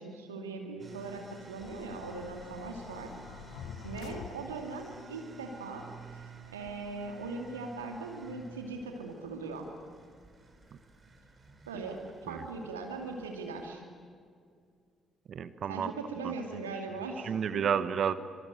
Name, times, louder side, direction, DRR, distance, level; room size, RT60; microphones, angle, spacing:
voice 1, 0.0-3.1 3.8-5.9 6.1-6.2 6.5-9.7 11.7-13.8 15.7-17.8, right 3 dB, 85° right, 3 dB, 2.5 m, -40 dB
sound 1, 0.8-13.7, right 3 dB, 35° right, 5.0 m, -52 dB
sound 2, 1.6-4.9, left 10 dB, 60° left, 0.7 m, -47 dB
voice 2, 15.3-15.9 16.2-16.3 17.2-18.1, right 8 dB, 55° right, 14 dB, 1.1 m, -31 dB
25.5 x 23.5 x 9.3 m, 2.2 s
figure-of-eight pair, 45°, 0 cm